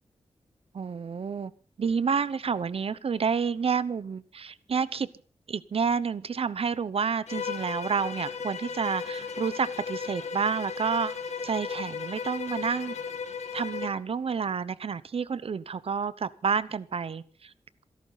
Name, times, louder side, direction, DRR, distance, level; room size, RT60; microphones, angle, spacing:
voice 1, 0.7-1.5 1.8-5.1 5.5-11.2 11.4-12.9 13.5-17.5, right 6 dB, 60° right, 17 dB, 0.8 m, -29 dB
Bowed string instrument, 7.3-14.0, left 5 dB, 85° left, 1.7 m, -36 dB
27.0 x 11.5 x 4.0 m, 0.41 s
wide cardioid pair, 125°, 11 cm